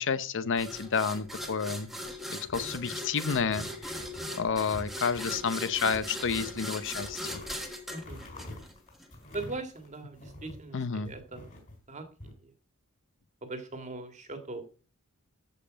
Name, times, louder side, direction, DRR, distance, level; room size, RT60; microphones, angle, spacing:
voice 1, 0.0-1.9 2.3-4.0 4.3-7.4 10.7-11.1, left 5 dB, 55° left, 0.7 m, -30 dB
sound 1, 0.6-9.1, equal, ahead, 1.4 m, -39 dB
sound 2, 2.4-3.1 3.5-4.3 4.6-5.3 5.7-10.7 11.0-12.3, left 1 dB, 35° left, 4.1 m, -47 dB
voice 2, 7.9-8.2 9.3-11.5 11.9-12.3 13.4-14.6, right 2 dB, 30° right, 1.8 m, -40 dB
13.5 x 5.5 x 5.2 m
head